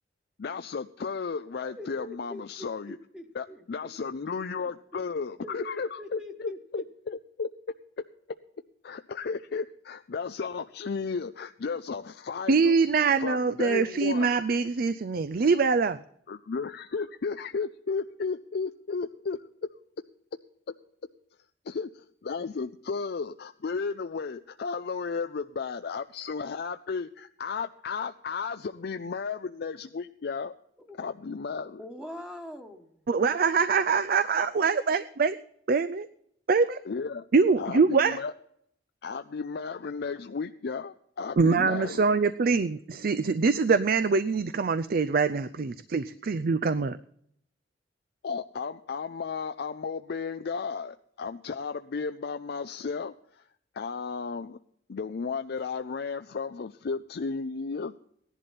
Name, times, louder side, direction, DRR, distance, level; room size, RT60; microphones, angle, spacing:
voice 1, 0.4-3.0 3.3-7.5 8.8-12.7 13.2-14.3 16.3-19.4 21.6-30.5 31.0-31.8 36.9-37.3 37.6-38.3 39.0-42.1 48.2-53.5 53.7-54.6 54.9-57.9, left 5 dB, 60° left, 9 dB, 0.5 m, -34 dB
voice 2, 1.6-3.9 5.4-6.8 30.9-31.0 31.8-33.0, left 1 dB, 5° right, 3 dB, 1.3 m, -43 dB
voice 3, 12.5-16.0 33.1-35.4 35.7-36.1 36.5-36.8 37.3-38.2 41.4-46.9, right 4 dB, 55° right, 13 dB, 0.5 m, -24 dB
17.0 x 11.0 x 4.2 m, 0.70 s
head